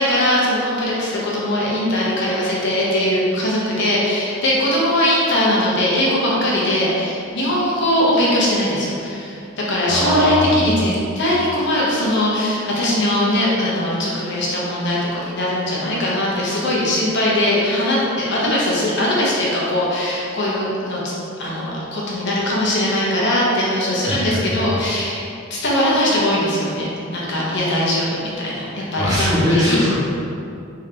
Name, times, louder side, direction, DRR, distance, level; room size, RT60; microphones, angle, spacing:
voice 1, 0.0-29.8, left 1 dB, 55° left, -5 dB, 0.8 m, -20 dB
voice 2, 9.9-10.4 24.0-24.7 29.0-29.9, left 1 dB, 20° right, -10 dB, 1.1 m, -20 dB
3.6 x 3.3 x 3.3 m, 2.6 s
head